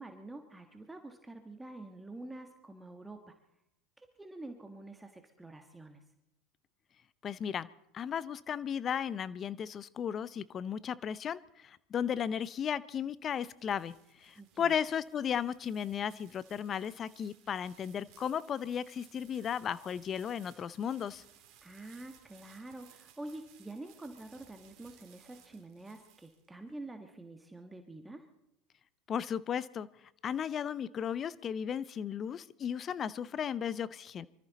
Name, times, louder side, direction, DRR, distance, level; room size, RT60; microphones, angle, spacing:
voice 1, 0.0-3.3 4.0-6.0 14.3-14.8 21.6-28.3, right 2 dB, 10° right, 5 dB, 1.5 m, -47 dB
voice 2, 7.2-7.7 7.9-21.2 29.1-29.9 30.2-34.3, left 8 dB, 35° left, 19 dB, 0.6 m, -35 dB
sound 1, 12.9-26.7, right 10 dB, 60° right, 2.5 m, -62 dB
24.5 x 14.0 x 4.1 m, 0.79 s
hypercardioid pair, 90°, 0 cm